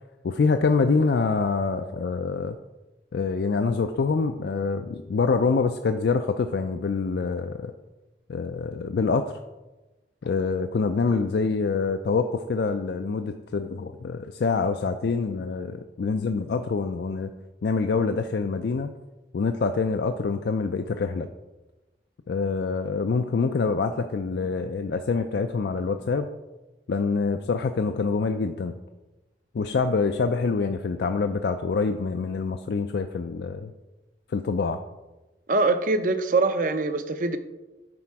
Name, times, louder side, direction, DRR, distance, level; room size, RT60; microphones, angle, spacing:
voice 1, 0.2-2.6 3.1-7.7 8.3-9.3 10.2-17.3 17.6-18.9 19.3-21.3 22.3-26.3 26.9-28.8 29.5-33.7 34.3-34.8, left 4 dB, 65° left, 7 dB, 0.4 m, -25 dB
voice 2, 35.5-37.4, right 3 dB, 50° right, 10 dB, 0.6 m, -23 dB
9.8 x 4.3 x 4.7 m, 1.1 s
head